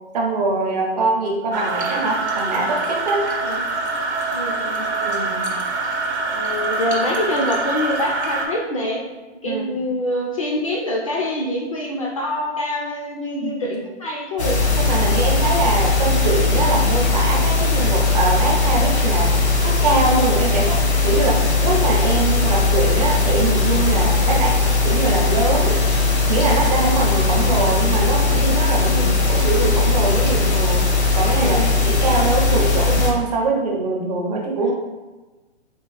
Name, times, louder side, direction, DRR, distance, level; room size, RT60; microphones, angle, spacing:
voice 1, 0.1-3.2 5.0-5.5 9.4-9.7 13.4-13.7 14.8-19.3 19.6-20.8 21.0-24.5 24.8-25.8 26.3-30.9 31.1-34.7, right 3 dB, 35° right, -1 dB, 0.6 m, -23 dB
sound 1, 1.5-8.5, right 3 dB, 75° right, 0.8 m, -25 dB
voice 2, 4.3-4.8 6.3-9.0 9.4-14.6 20.4-20.7 24.3-24.5 28.9-29.1 31.4-31.7 34.6-34.7, left 1 dB, 30° left, -1 dB, 0.4 m, -25 dB
sound 2, 14.4-33.1, left 3 dB, 75° left, 0.9 m, -18 dB
3.7 x 2.4 x 3.0 m, 1.2 s
hypercardioid pair, 135°, 34 cm